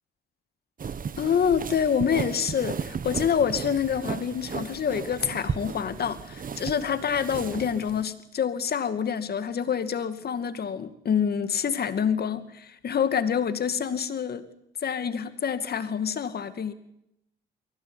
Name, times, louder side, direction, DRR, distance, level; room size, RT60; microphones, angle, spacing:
Dancing in dress, 0.8-8.0, right 6 dB, 45° right, 1.6 m, -35 dB
voice 1, 1.2-14.5 14.8-16.7, left 7 dB, 50° left, 11 dB, 2.4 m, -27 dB
23.5 x 16.5 x 9.8 m, 0.81 s
cardioid pair, 90°, 20 cm